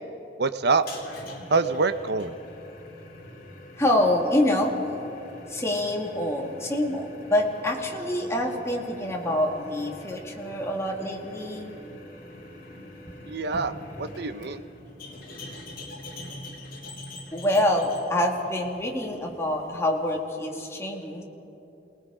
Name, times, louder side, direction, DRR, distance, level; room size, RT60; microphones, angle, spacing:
voice 1, 0.4-0.8 1.5-2.4 13.3-14.6, right 4 dB, 65° right, 11 dB, 0.8 m, -25 dB
sound 1, 0.7-20.1, left 1 dB, 55° left, 3.0 m, -44 dB
voice 2, 3.8-4.8 5.5-11.7 17.3-21.2, left 1 dB, 15° left, 0 dB, 2.2 m, -26 dB
28.5 x 19.0 x 5.0 m, 2.9 s
head